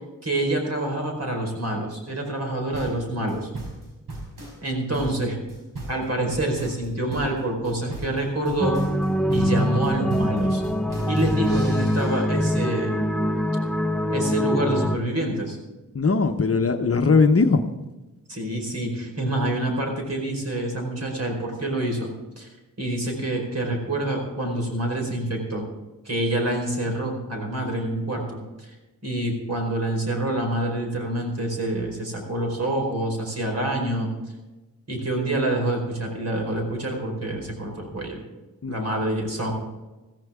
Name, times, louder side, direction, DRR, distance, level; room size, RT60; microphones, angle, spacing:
voice 1, 0.2-3.5 4.6-5.4 5.9-8.8 9.3-10.6 11.1-12.9 14.1-15.6 18.3-22.1 22.4-22.5 22.8-25.6 26.0-28.7 29.0-34.1 34.9-38.2 38.7-39.5, right 1 dB, 45° right, 2 dB, 4.7 m, -27 dB
sound 1, 2.7-12.2, right 2 dB, 70° right, 5.0 m, -37 dB
sound 2, 8.6-15.0, equal, ahead, 1.0 m, -23 dB
voice 2, 15.9-17.6 38.6-38.8, left 4 dB, 40° left, 6 dB, 1.0 m, -19 dB
15.0 x 15.0 x 3.7 m, 1.1 s
cardioid pair, 75°, 34 cm